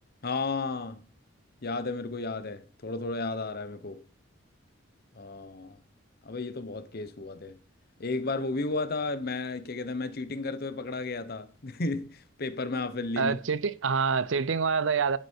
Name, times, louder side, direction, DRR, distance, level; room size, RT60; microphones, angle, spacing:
voice 1, 0.2-1.0 1.6-4.0 5.1-5.8 6.2-7.6 8.0-13.4, left 3 dB, 50° left, 0.8 m, -33 dB
voice 2, 13.2-15.2, right 5 dB, 65° right, 0.6 m, -26 dB
11.0 x 6.4 x 4.5 m
head